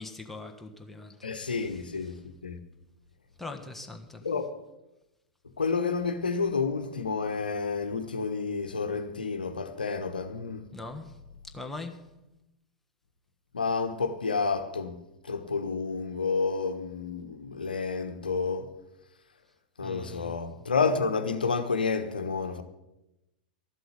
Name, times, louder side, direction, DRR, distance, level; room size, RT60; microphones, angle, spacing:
voice 1, 0.0-2.2 3.4-4.3 10.7-11.2 11.5-12.1 19.8-20.4, left 2 dB, 5° left, 1.4 m, -42 dB
voice 2, 1.2-2.1 2.4-2.6 4.2-4.5 5.6-10.6 13.5-15.0 15.3-18.7 19.8-22.6, left 4 dB, 80° left, 1.0 m, -30 dB
12.5 x 7.9 x 8.4 m
figure-of-eight pair, 95°, 5 cm